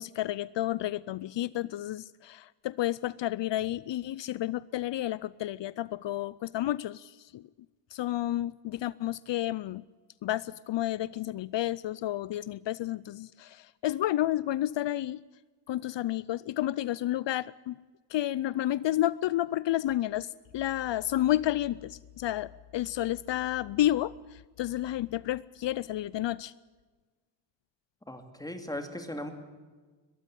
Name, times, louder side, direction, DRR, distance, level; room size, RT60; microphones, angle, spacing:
voice 1, 0.0-7.4 7.9-9.8 10.2-15.2 15.7-17.8 18.1-26.5, left 13 dB, 75° left, 20 dB, 0.5 m, -31 dB
voice 2, 28.1-29.3, left 1 dB, 10° left, 6 dB, 2.5 m, -38 dB
22.0 x 14.0 x 9.0 m, 1.3 s
wide cardioid pair, 115°, 44 cm